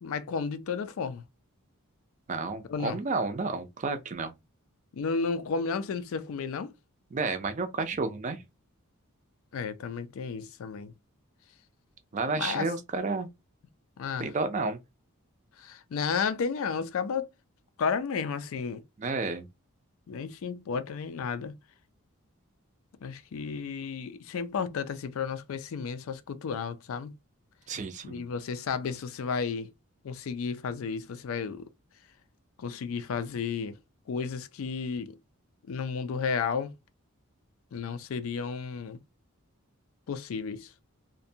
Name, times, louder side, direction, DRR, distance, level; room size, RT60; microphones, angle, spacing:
voice 1, 0.0-1.2 2.7-3.0 4.9-6.7 9.5-10.9 12.3-12.7 14.0-14.3 15.6-17.3 17.8-18.8 20.1-21.6 23.0-27.2 28.0-29.7 30.0-31.7 32.6-33.7 34.1-35.2 35.7-36.7 37.7-39.0 40.1-40.7, left 5 dB, 65° left, 0.4 m, -32 dB
voice 2, 2.3-4.3 7.1-8.4 12.1-13.3 14.2-14.8 19.0-19.5 27.7-28.3, right 3 dB, 35° right, 0.4 m, -31 dB
2.5 x 2.1 x 2.6 m
head